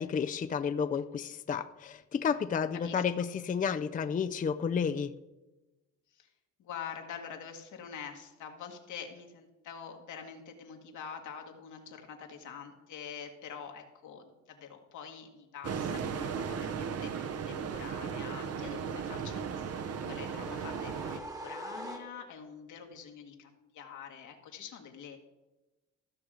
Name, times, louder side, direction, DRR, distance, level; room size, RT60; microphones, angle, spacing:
voice 1, 0.0-5.1, left 6 dB, 25° left, 10 dB, 0.4 m, -31 dB
voice 2, 6.6-25.2, left 7 dB, 80° left, 3 dB, 1.7 m, -46 dB
sound 1, 15.6-21.2, right 6 dB, 55° right, 0.8 m, -36 dB
sound 2, 19.3-22.5, equal, 10° right, 1.3 m, -45 dB
14.5 x 6.3 x 5.0 m, 1.1 s
cardioid pair, 90°, 30 cm